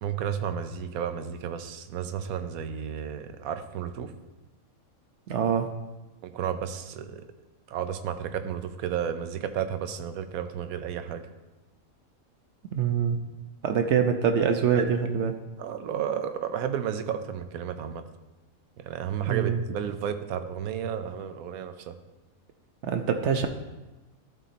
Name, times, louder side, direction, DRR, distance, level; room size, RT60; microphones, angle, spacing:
voice 1, 0.0-4.1 6.2-7.2 7.7-11.3 15.6-18.0 18.8-22.0, right 8 dB, 90° right, 9 dB, 1.1 m, -32 dB
voice 2, 5.3-5.7 12.7-13.2 13.6-15.4 19.3-19.6 22.8-23.5, right 7 dB, 65° right, 6 dB, 0.8 m, -24 dB
12.0 x 4.1 x 4.2 m, 1.1 s
omnidirectional pair, 1.5 m